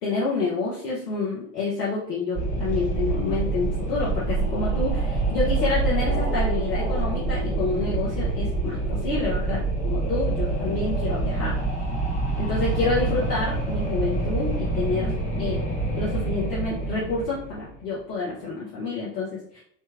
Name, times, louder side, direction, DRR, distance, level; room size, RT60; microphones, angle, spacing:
voice 1, 0.0-11.6 12.4-15.6 16.0-19.6, left 3 dB, 80° left, -6 dB, 1.2 m, -28 dB
Wind, 2.4-17.7, right 3 dB, 15° left, 1.2 m, -26 dB
3.2 x 3.0 x 3.4 m, 0.66 s
figure-of-eight pair, 75°, 49 cm